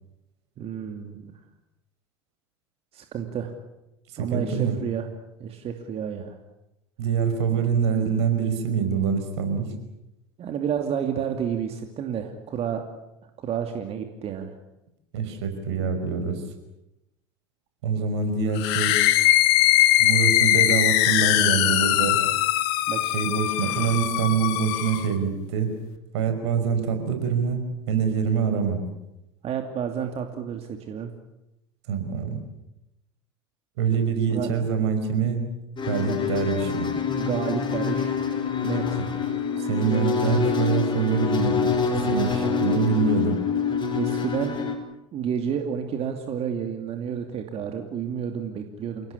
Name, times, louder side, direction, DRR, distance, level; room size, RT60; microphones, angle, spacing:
voice 1, 0.6-1.3 2.9-3.5 4.2-5.1 5.4-6.3 10.4-12.8 13.4-14.5 22.9-23.2 29.4-31.1 34.3-34.5 37.1-38.2 38.6-39.0 43.9-44.6 45.1-49.1, right 8 dB, 45° right, 5 dB, 2.7 m, -30 dB
voice 2, 4.1-4.8 7.0-9.7 15.1-16.4 17.8-19.0 20.0-22.2 23.1-25.7 26.1-28.8 31.9-32.4 33.8-35.5 35.9-36.9 39.6-41.6 41.9-43.4, right 6 dB, 70° right, 7 dB, 5.3 m, -25 dB
sound 1, 18.5-25.1, left 14 dB, 65° left, 1.8 m, -21 dB
sound 2, 35.8-44.7, left 6 dB, 35° left, 5.5 m, -26 dB
28.5 x 18.0 x 8.6 m, 0.90 s
hypercardioid pair, 75°, 15 cm